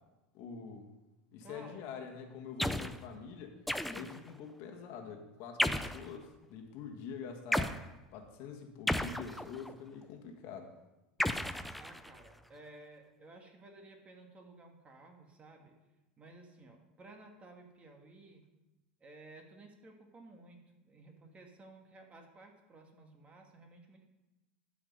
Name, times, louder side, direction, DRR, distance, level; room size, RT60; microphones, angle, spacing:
voice 1, 0.3-0.9 1.3-3.6 3.9-7.8 8.1-10.7, left 6 dB, 55° left, 4 dB, 1.5 m, -45 dB
voice 2, 1.4-1.9 11.8-15.7 16.2-18.4 19.0-24.1, right 2 dB, 25° right, 3 dB, 1.6 m, -55 dB
sound 1, 2.6-3.0 3.7-4.3 5.6-6.1 7.5-7.8 8.9-9.7 11.2-12.3, left 1 dB, ahead, 0.4 m, -33 dB
12.5 x 5.2 x 5.3 m, 1.0 s
supercardioid pair, 120°, 5 cm